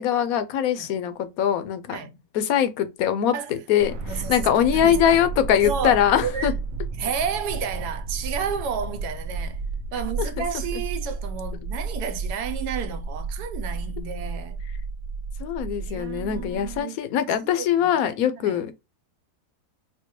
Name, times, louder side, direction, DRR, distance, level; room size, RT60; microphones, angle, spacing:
voice 1, 0.0-2.0 2.3-3.9 4.3-6.5 10.2-10.4 10.7-10.8 15.4-18.7, left 9 dB, 70° left, 1.0 m, -22 dB
sound 1, 3.8-16.8, right 4 dB, 65° right, 0.9 m, -32 dB
voice 2, 4.0-5.2 5.6-6.5 7.0-14.6 15.9-17.0 17.4-18.0 18.3-18.6, right 7 dB, 85° right, 1.2 m, -32 dB
4.4 x 2.2 x 2.8 m
omnidirectional pair, 1.7 m